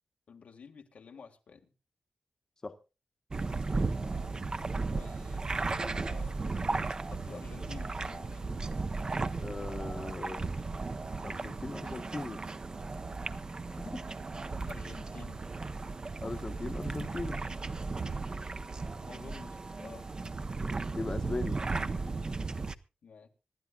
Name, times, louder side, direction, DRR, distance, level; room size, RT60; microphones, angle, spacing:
voice 1, 0.3-1.7 4.9-6.4 7.1-8.5 14.6-15.6 18.7-20.1 23.0-23.3, left 5 dB, 85° left, 4 dB, 1.6 m, -51 dB
sound 1, 3.3-22.7, right 3 dB, 35° right, 0.7 m, -35 dB
voice 2, 9.3-10.5 11.2-12.4 13.8-14.0 16.2-17.4 20.9-21.6, left 2 dB, 30° left, 7 dB, 0.9 m, -38 dB
25.5 x 11.5 x 2.3 m, 0.31 s
wide cardioid pair, 140°, 2 cm